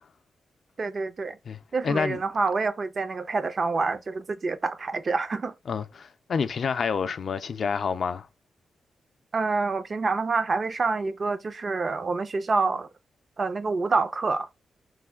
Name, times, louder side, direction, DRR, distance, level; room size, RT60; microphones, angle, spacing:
voice 1, 0.8-1.4 1.7-5.5 9.3-12.9 13.4-14.5, right 4 dB, 45° right, 0.4 m, -27 dB
voice 2, 1.5-2.2 5.7-8.3, left 6 dB, 60° left, 0.3 m, -28 dB
3.1 x 2.1 x 3.5 m
cardioid pair, 95°, 0 cm